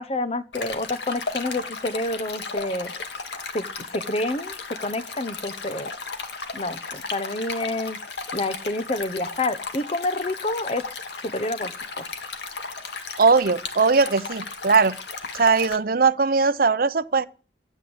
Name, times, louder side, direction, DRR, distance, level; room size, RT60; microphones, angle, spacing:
voice 1, 0.0-2.9 3.5-3.6 3.9-4.5 4.8-5.9 6.5-8.0 8.3-10.8 11.3-12.0, left 2 dB, 35° left, 1.0 m, -28 dB
Stream, 0.5-15.8, left 4 dB, 75° left, 1.9 m, -35 dB
voice 2, 13.2-14.9 15.3-17.3, right 4 dB, 55° right, 0.7 m, -19 dB
13.5 x 11.0 x 8.0 m
head